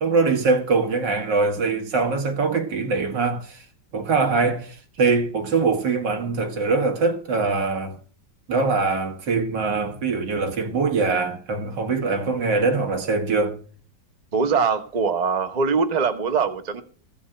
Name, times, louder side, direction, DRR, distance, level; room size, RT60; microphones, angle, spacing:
voice 1, 0.0-3.6 3.9-8.0 8.5-13.6, right 4 dB, 80° right, 2.2 m, -23 dB
voice 2, 14.3-16.8, right 5 dB, 30° right, 0.9 m, -22 dB
15.0 x 5.2 x 8.8 m
omnidirectional pair, 1.9 m